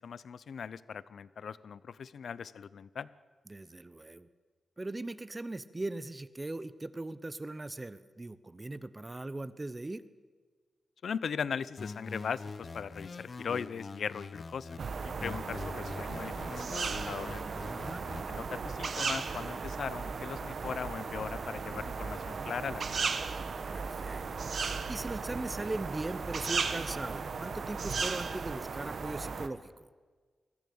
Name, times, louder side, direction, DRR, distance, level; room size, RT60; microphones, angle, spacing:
voice 1, 0.0-3.1 11.0-14.8 15.2-17.6 18.3-23.2, left 6 dB, 75° left, 17 dB, 0.6 m, -39 dB
voice 2, 3.5-4.3 4.8-10.0 17.7-18.0 23.7-24.2 24.9-29.9, right 2 dB, 20° right, 15 dB, 0.9 m, -39 dB
sound 1, 11.8-14.8 15.2-18.2, left 4 dB, 45° left, 0.8 m, -44 dB
sound 2, 14.8-29.5, right 5 dB, 60° right, 1.2 m, -36 dB
21.0 x 14.5 x 8.6 m, 1.5 s
wide cardioid pair, 100°, 0 cm